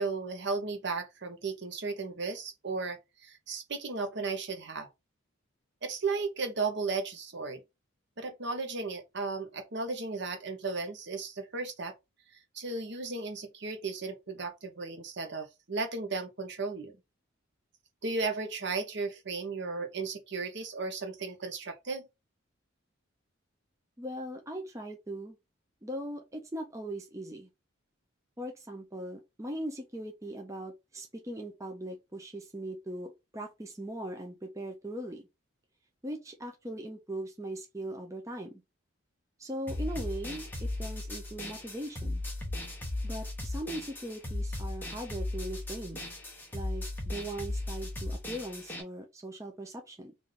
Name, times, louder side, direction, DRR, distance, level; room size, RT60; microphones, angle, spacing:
voice 1, 0.0-4.9 5.8-7.6 8.2-11.9 12.5-17.0 18.0-22.1, right 4 dB, 55° right, 0.9 m, -35 dB
voice 2, 24.0-25.4 25.8-27.5 28.4-35.3 36.0-38.6 39.4-42.2 43.0-46.1 46.5-50.1, right 1 dB, 15° right, 0.6 m, -40 dB
sound 1, 39.7-48.8, left 1 dB, 10° left, 0.9 m, -36 dB
3.3 x 2.6 x 3.7 m
head